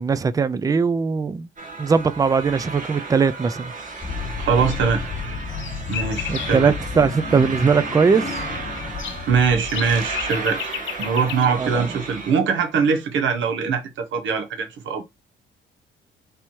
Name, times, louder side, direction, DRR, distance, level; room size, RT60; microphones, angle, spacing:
voice 1, 0.0-1.5 1.8-3.7 6.3-8.3 11.6-11.9, right 5 dB, 20° right, 0.4 m, -20 dB
sound 1, 1.6-12.3, right 3 dB, 40° right, 1.5 m, -33 dB
sound 2, 4.0-10.8, left 5 dB, 35° left, 0.9 m, -33 dB
voice 2, 4.4-5.0 5.9-6.7 9.3-15.0, right 5 dB, 75° right, 1.1 m, -22 dB
sound 3, 4.7-4.8 5.1-6.7 7.9-11.5, left 9 dB, 70° left, 0.7 m, -34 dB
3.4 x 2.9 x 4.4 m
cardioid pair, 90°, 20 cm